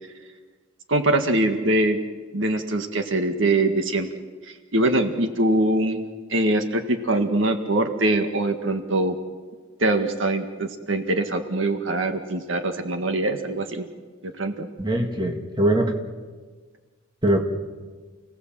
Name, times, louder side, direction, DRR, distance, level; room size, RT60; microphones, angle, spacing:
voice 1, 0.9-2.0 2.3-4.1 4.4-6.0 6.3-9.2 9.8-13.9 14.2-14.7, right 2 dB, 70° right, 6 dB, 1.8 m, -23 dB
voice 2, 14.8-15.9 17.2-17.4, right 1 dB, 20° right, 2 dB, 2.1 m, -21 dB
29.5 x 18.5 x 7.6 m, 1.4 s
head